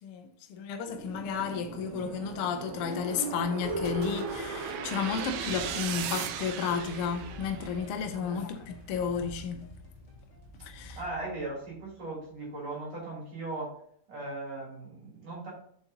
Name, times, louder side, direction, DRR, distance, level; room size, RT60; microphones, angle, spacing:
voice 1, 0.0-9.7 10.7-11.0, left 6 dB, 80° left, 1.2 m, -33 dB
sound 1, 0.9-8.1, right 9 dB, 90° right, 1.3 m, -39 dB
sound 2, 2.8-7.8, equal, 20° right, 3.2 m, -39 dB
sound 3, 3.6-12.5, left 1 dB, 35° left, 1.2 m, -49 dB
voice 2, 8.1-8.5 10.6-10.7 11.0-13.7 14.1-15.5, right 2 dB, 60° right, 4.5 m, -38 dB
7.2 x 6.9 x 2.9 m
omnidirectional pair, 3.4 m